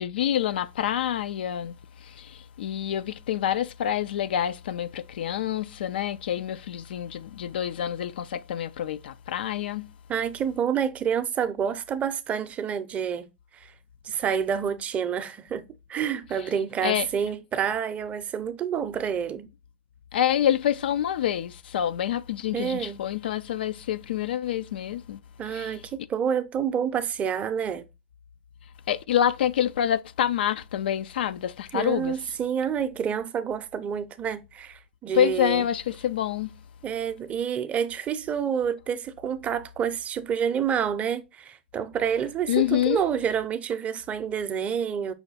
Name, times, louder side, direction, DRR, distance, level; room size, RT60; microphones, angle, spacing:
voice 1, 0.0-9.9 16.8-17.1 20.1-25.2 25.5-25.8 28.9-32.2 35.1-36.5 42.5-43.0, left 10 dB, 80° left, 0.3 m, -27 dB
voice 2, 10.1-13.7 14.0-15.6 15.9-19.5 22.5-23.0 25.4-27.8 31.7-35.7 36.8-45.1, right 8 dB, 25° right, 0.5 m, -28 dB
5.6 x 2.2 x 3.9 m
hypercardioid pair, 120°, 5 cm